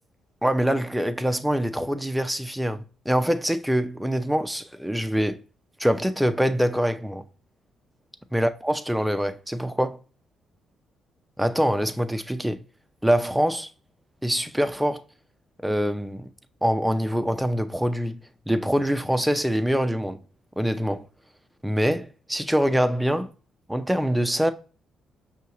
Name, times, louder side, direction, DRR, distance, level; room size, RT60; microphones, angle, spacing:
voice 1, 0.4-5.4 5.8-7.2 8.3-10.0 11.4-12.6 13.0-13.7 14.2-15.0 15.6-16.3 16.6-18.2 18.5-20.2 20.6-21.0 21.6-23.3 23.7-24.5, equal, 5° right, 0.5 m, -24 dB
5.6 x 2.8 x 2.6 m
cardioid pair, 90°, 0 cm